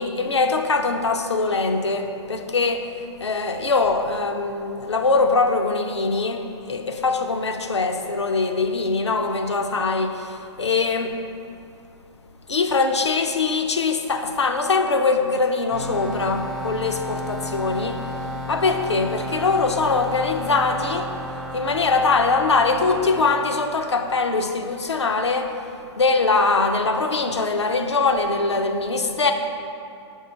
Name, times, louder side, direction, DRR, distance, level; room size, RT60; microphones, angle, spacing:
voice 1, 0.0-2.9 3.2-11.2 12.5-18.1 18.5-21.1 21.5-25.5 26.0-29.3, left 3 dB, 70° left, 6 dB, 0.6 m, -22 dB
sound 1, 15.7-23.4, equal, ahead, 0.5 m, -32 dB
5.5 x 4.1 x 6.1 m, 2.6 s
figure-of-eight pair, 120°, 15 cm